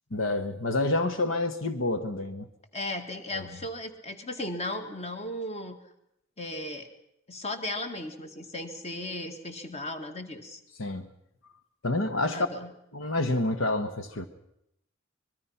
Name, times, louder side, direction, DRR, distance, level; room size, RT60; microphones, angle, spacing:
voice 1, 0.1-2.5 3.3-3.4 10.8-11.1 11.8-12.5 12.9-14.3, left 2 dB, 80° left, 9 dB, 1.4 m, -28 dB
voice 2, 2.7-5.8 6.4-6.9 7.3-10.6 12.3-12.7, left 1 dB, 35° left, 7 dB, 2.2 m, -36 dB
24.5 x 21.5 x 5.8 m, 0.80 s
head